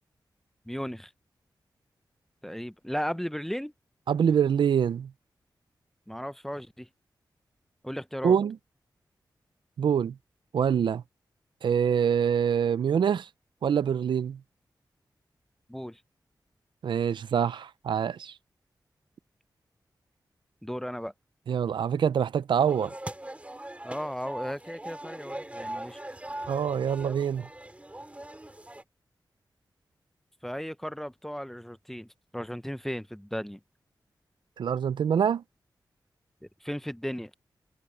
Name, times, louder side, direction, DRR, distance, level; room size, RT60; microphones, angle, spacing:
voice 1, 0.7-1.1 2.4-3.7 6.1-6.9 7.8-8.4 15.7-16.0 20.6-21.1 23.8-26.0 30.4-32.1 32.3-33.6 36.6-37.3, equal, 5° left, 0.8 m, -35 dB
voice 2, 4.1-5.1 8.2-8.6 9.8-10.2 10.5-11.0 11.6-13.3 13.6-14.4 16.8-18.3 21.5-22.9 26.5-27.5 34.6-35.4, right 8 dB, 90° right, 0.5 m, -25 dB
sound 1, 22.7-28.8, right 1 dB, 15° right, 2.9 m, -40 dB
cardioid pair, 60°, 8 cm